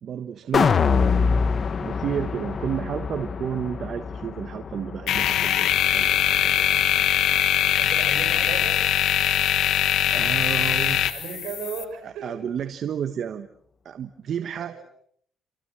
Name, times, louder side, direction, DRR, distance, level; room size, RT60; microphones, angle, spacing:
voice 1, 0.0-0.7 1.8-6.7 10.1-11.0 12.0-13.5 13.8-14.8, right 8 dB, 60° right, 9 dB, 1.4 m, -31 dB
sound 1, 0.5-6.8 7.1-7.2, left 5 dB, 45° left, 1.5 m, -25 dB
voice 2, 0.6-1.1 7.8-8.9 10.7-12.3 14.6-14.8, right 7 dB, 85° right, 3 dB, 6.2 m, -37 dB
sound 2, 5.1-11.8, left 11 dB, 75° left, 1.5 m, -22 dB
28.0 x 27.0 x 6.3 m, 0.63 s
cardioid pair, 90°, 0 cm